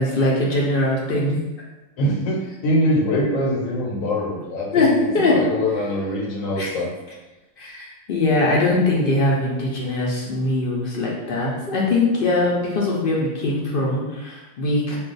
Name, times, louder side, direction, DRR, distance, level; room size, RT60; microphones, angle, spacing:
voice 1, 0.0-1.3 4.7-5.3 6.6-6.7 7.6-15.0, left 2 dB, 55° left, -3 dB, 0.7 m, -21 dB
voice 2, 2.0-6.9, left 1 dB, 85° left, -2 dB, 1.2 m, -23 dB
2.4 x 2.3 x 3.8 m, 1.1 s
omnidirectional pair, 1.4 m